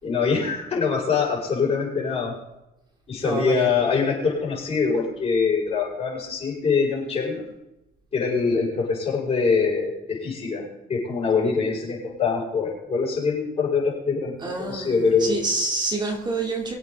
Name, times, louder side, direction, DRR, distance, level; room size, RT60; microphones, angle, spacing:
voice 1, 0.0-2.4 3.1-7.5 8.1-15.4, left 5 dB, 40° left, -5 dB, 6.6 m, -24 dB
voice 2, 3.2-3.8 14.4-16.8, right 2 dB, 25° right, 0 dB, 3.5 m, -27 dB
24.5 x 8.4 x 4.1 m, 0.93 s
cardioid pair, 110°, 17 cm